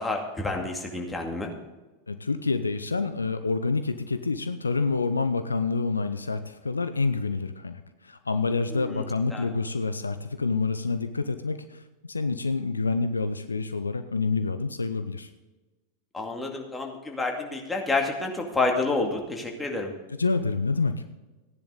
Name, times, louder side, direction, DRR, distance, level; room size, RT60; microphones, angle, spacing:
voice 1, 0.0-1.5 8.7-9.5 16.1-19.9, left 3 dB, 10° left, 1 dB, 2.3 m, -29 dB
voice 2, 2.1-11.8 12.1-15.3 20.2-21.0, left 4 dB, 80° left, 10 dB, 0.7 m, -27 dB
15.5 x 10.5 x 3.9 m, 1.2 s
figure-of-eight pair, 90°, 0 cm